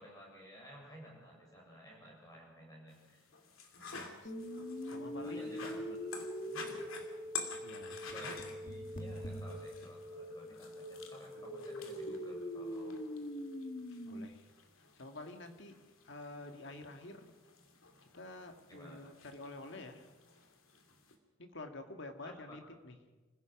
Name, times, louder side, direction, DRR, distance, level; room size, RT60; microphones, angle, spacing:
voice 1, 0.0-3.2 5.2-6.0 6.4-6.6 8.0-13.0 18.7-19.0 22.2-22.4, equal, 20° left, -2 dB, 7.2 m, -54 dB
sound 1, 2.9-21.2, left 4 dB, 80° left, 2.6 m, -50 dB
voice 2, 3.9-5.7 7.6-8.1 13.9-14.5 14.8-15.7 16.0-17.3 18.0-20.1 21.4-23.0, left 2 dB, 60° left, 6 dB, 2.0 m, -49 dB
sound 2, 4.2-14.2, equal, 40° left, 1.7 m, -43 dB
26.5 x 16.0 x 6.1 m, 1.2 s
head